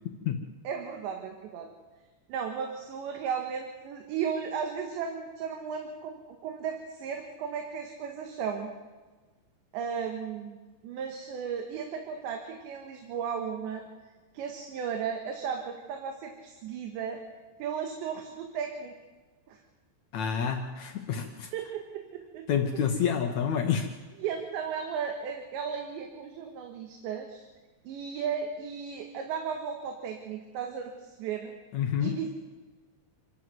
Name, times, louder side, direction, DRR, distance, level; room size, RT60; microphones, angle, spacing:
voice 1, 0.7-1.7 2.3-8.7 9.7-10.6 10.8-13.8 14.3-17.2 17.6-18.9 19.5-19.6 21.5-22.4 22.7-22.8 24.2-27.4 27.9-31.5 32.0-32.3, right 7 dB, 85° right, 3 dB, 3.8 m, -35 dB
voice 2, 20.1-21.5 22.5-23.9 31.7-32.1, left 7 dB, 80° left, 4 dB, 1.6 m, -28 dB
27.0 x 12.5 x 7.8 m, 1.3 s
omnidirectional pair, 5.0 m